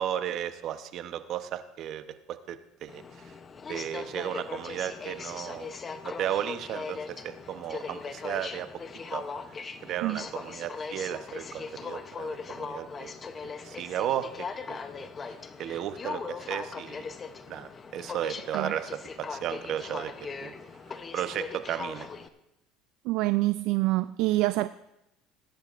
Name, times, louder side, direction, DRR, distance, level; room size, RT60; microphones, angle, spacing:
voice 1, 0.0-3.3 3.7-5.7 6.0-8.7 9.1-9.2 9.8-13.2 13.6-14.3 14.7-14.8 15.2-17.0 17.5-20.1 20.4-20.5 21.1-22.1, right 10 dB, 55° right, 10 dB, 0.9 m, -34 dB
Aircraft, 2.9-22.3, left 5 dB, 30° left, 0.8 m, -39 dB
voice 2, 23.1-24.7, right 18 dB, 70° right, 13 dB, 0.3 m, -26 dB
20.5 x 10.5 x 2.5 m, 0.89 s
supercardioid pair, 105°, 0 cm